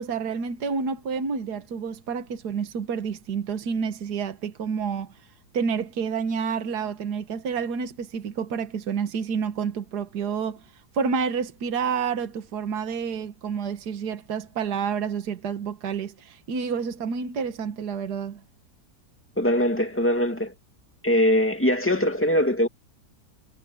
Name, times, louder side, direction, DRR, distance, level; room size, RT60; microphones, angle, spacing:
voice 1, 0.0-5.1 5.5-10.6 10.9-18.4, right 6 dB, 70° right, 1.8 m, -29 dB
voice 2, 19.4-20.5 21.0-22.7, equal, 5° left, 2.3 m, -22 dB
omnidirectional pair, 1.8 m